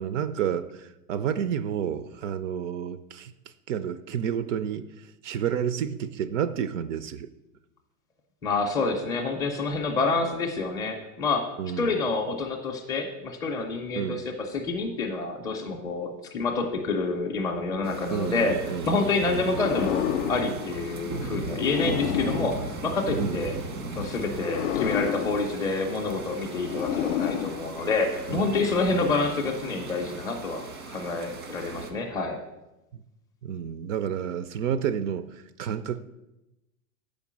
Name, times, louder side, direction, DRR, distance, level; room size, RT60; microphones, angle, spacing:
voice 1, 0.0-3.3 3.7-4.9 5.2-7.3 11.6-12.0 13.9-14.2 18.1-19.4 23.2-23.4 28.3-28.6 28.9-29.1 33.4-36.0, right 8 dB, 60° right, 13 dB, 0.5 m, -30 dB
voice 2, 8.4-11.5 11.8-23.5 24.0-32.4, left 3 dB, 10° left, 0 dB, 0.4 m, -28 dB
sound 1, 17.8-31.9, right 3 dB, 85° right, 1.7 m, -37 dB
sound 2, 19.4-23.6 24.3-28.3, left 11 dB, 60° left, 0.5 m, -32 dB
7.1 x 5.1 x 7.2 m, 0.97 s
supercardioid pair, 165°, 42 cm